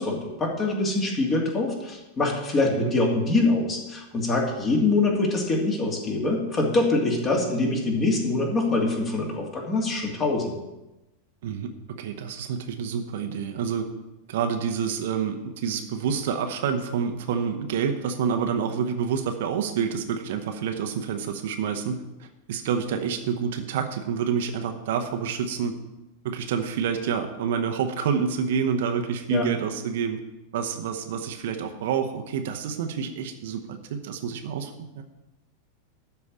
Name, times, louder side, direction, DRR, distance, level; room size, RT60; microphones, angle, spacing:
voice 1, 0.0-10.5 29.3-29.5, left 2 dB, 25° left, 0 dB, 2.6 m, -24 dB
voice 2, 11.4-13.9 14.3-25.7 26.2-30.2 30.5-35.0, right 7 dB, 55° right, 6 dB, 1.0 m, -28 dB
12.5 x 4.7 x 8.3 m, 0.99 s
figure-of-eight pair, 90°, 0 cm